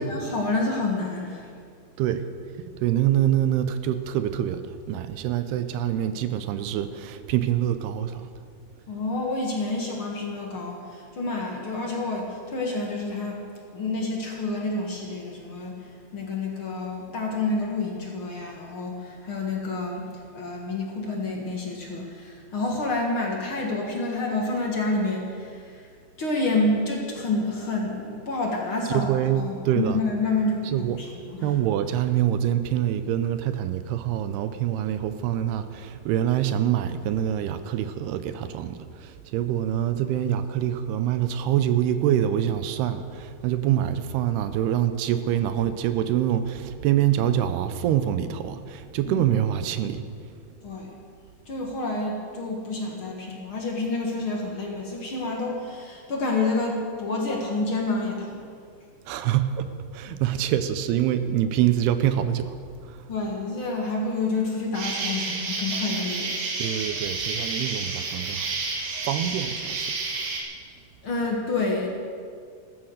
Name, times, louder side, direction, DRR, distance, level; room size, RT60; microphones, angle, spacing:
voice 1, 0.0-1.5 8.9-13.4 13.7-20.0 20.3-25.9 26.2-31.6 49.0-49.2 50.6-51.0 51.5-58.4 63.1-66.3 71.0-71.9, left 2 dB, 50° left, -1 dB, 1.7 m, -28 dB
voice 2, 2.0-2.3 2.7-8.3 28.9-30.0 30.7-31.0 31.4-50.1 59.1-62.6 62.8-63.1 66.6-68.6 69.0-70.0, right 11 dB, 80° right, 11 dB, 2.7 m, -25 dB
Insect, 64.7-70.4, right 3 dB, 60° right, 3.4 m, -30 dB
15.0 x 13.0 x 6.5 m, 2.2 s
omnidirectional pair, 4.7 m